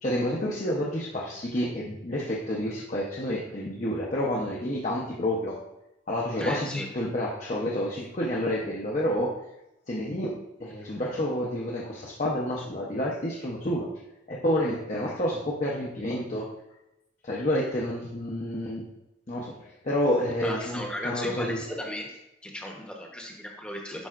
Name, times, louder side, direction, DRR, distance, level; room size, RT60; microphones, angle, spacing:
voice 1, 0.0-5.6 6.1-9.3 9.9-13.9 14.3-16.5 17.2-18.9 19.3-21.7, left 1 dB, 40° left, -4 dB, 0.7 m, -29 dB
voice 2, 6.4-6.9 20.4-22.1 22.4-24.1, left 1 dB, 5° left, 0 dB, 0.9 m, -35 dB
10.0 x 5.5 x 2.5 m, 0.92 s
head